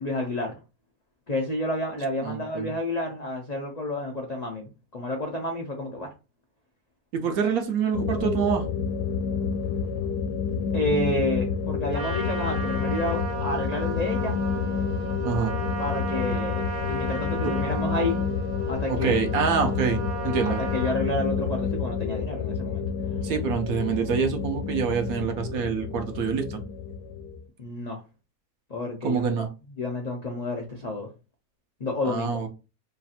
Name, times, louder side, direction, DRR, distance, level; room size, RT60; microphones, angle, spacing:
voice 1, 0.0-0.5 1.3-6.1 10.7-14.4 15.8-18.2 18.7-19.2 20.4-22.8 27.6-28.0 28.7-29.5 29.8-31.1 31.8-32.4, left 1 dB, 60° left, 0.4 m, -30 dB
voice 2, 2.2-2.7 7.1-8.7 15.2-15.5 17.4-17.5 18.9-20.6 23.2-26.6 29.0-29.5 32.1-32.5, right 6 dB, 70° right, 1.1 m, -26 dB
sound 1, 7.9-27.4, left 5 dB, 80° left, 1.1 m, -29 dB
Trumpet, 11.9-21.0, right 5 dB, 90° right, 1.5 m, -36 dB
3.2 x 2.4 x 4.1 m
omnidirectional pair, 1.7 m